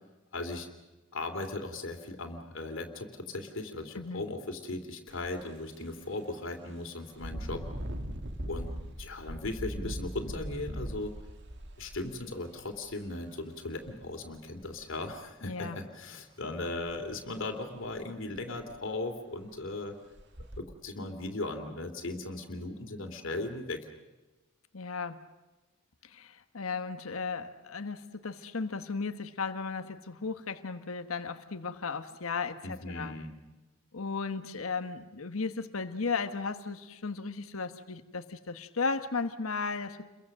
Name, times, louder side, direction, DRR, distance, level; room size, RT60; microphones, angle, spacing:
voice 1, 0.3-0.7 1.1-7.6 8.4-8.7 9.0-11.1 11.8-20.0 20.6-23.9 32.6-33.3, left 2 dB, 65° left, 4 dB, 2.7 m, -37 dB
Engine, 5.1-5.3 5.8-5.9 7.1-12.9 13.8-13.9 14.4-15.1 16.9-17.0 17.4-17.5 17.9-18.0 18.4-18.9 19.4-19.5 20.1-20.6, right 1 dB, 55° right, 2.2 m, -40 dB
voice 2, 15.4-15.8 24.7-25.2 26.0-33.2 33.9-40.0, left 4 dB, 85° left, 9 dB, 1.3 m, -35 dB
30.0 x 23.0 x 6.6 m, 1.1 s
head